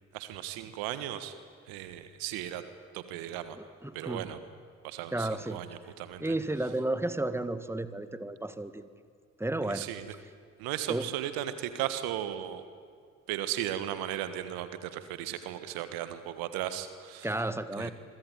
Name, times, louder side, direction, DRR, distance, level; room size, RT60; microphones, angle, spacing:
voice 1, 0.1-1.3 1.7-2.6 2.9-3.6 3.9-4.4 4.8-6.4 9.6-10.1 10.6-12.7 13.3-17.5 17.7-17.9, right 12 dB, 75° right, 11 dB, 1.5 m, -36 dB
voice 2, 3.8-4.3 5.1-5.6 6.2-8.9 9.4-9.9 10.9-11.1 17.2-17.9, right 2 dB, 5° right, 12 dB, 1.8 m, -32 dB
26.5 x 23.0 x 9.3 m, 2.1 s
hypercardioid pair, 40°, 37 cm